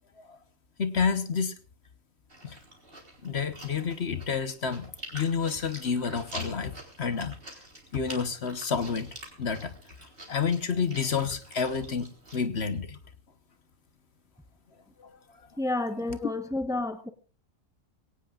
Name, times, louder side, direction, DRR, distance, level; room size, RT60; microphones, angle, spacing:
voice 1, 0.8-1.5 2.4-2.6 3.2-7.4 7.9-9.7 10.3-13.0 15.0-15.1, left 6 dB, 55° left, 11 dB, 1.4 m, -29 dB
Chewing mastication, 2.3-12.4, right 1 dB, 45° right, 4.1 m, -47 dB
voice 2, 15.6-17.1, left 2 dB, 5° right, 9 dB, 1.0 m, -30 dB
23.0 x 17.5 x 2.5 m, 0.37 s
omnidirectional pair, 1.4 m